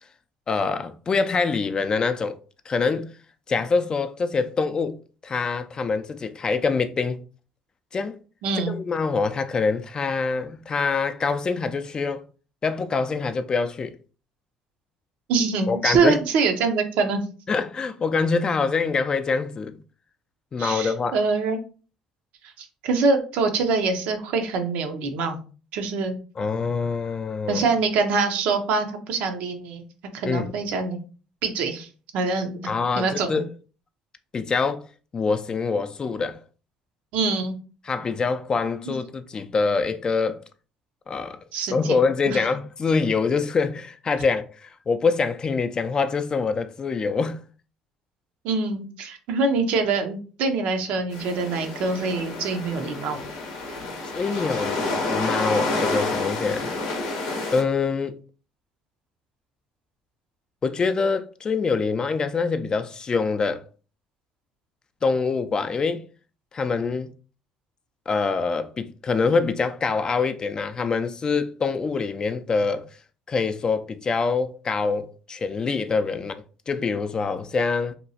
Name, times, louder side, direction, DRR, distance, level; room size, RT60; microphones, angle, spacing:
voice 1, 0.5-2.4 2.7-3.1 3.5-5.0 5.2-7.2 7.9-8.2 8.7-12.2 12.6-13.9 15.7-16.2 17.5-19.8 20.5-21.2 26.4-27.7 30.2-30.5 32.7-33.5 34.3-34.8 35.1-36.4 37.8-40.4 41.1-41.4 41.7-47.4 54.1-56.7 57.5-58.2 60.6-63.7 65.0-66.0 66.5-67.1 68.1-72.9 73.3-77.9, left 4 dB, 35° left, 0.3 m, -25 dB
voice 2, 8.4-8.7 15.3-17.2 20.6-21.6 22.4-25.4 25.7-26.1 27.5-29.8 30.1-31.0 31.4-32.6 33.0-33.4 37.1-37.6 41.5-42.0 42.3-42.4 48.4-53.2, right 4 dB, 70° right, 0.5 m, -24 dB
sound 1, 51.1-57.6, left 2 dB, 85° left, 0.6 m, -29 dB
2.9 x 2.3 x 2.7 m
supercardioid pair, 70°, 2 cm